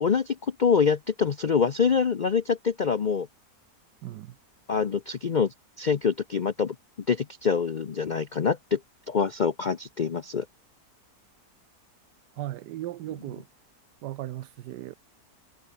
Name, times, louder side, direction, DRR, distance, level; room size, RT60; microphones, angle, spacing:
voice 1, 0.0-3.3 4.7-6.7 7.1-8.8 9.1-10.5, left 6 dB, 65° left, 0.4 m, -25 dB
voice 2, 4.0-4.3 12.4-13.4 14.0-14.9, right 14 dB, 80° right, 1.3 m, -36 dB
omnidirectional pair, 1.8 m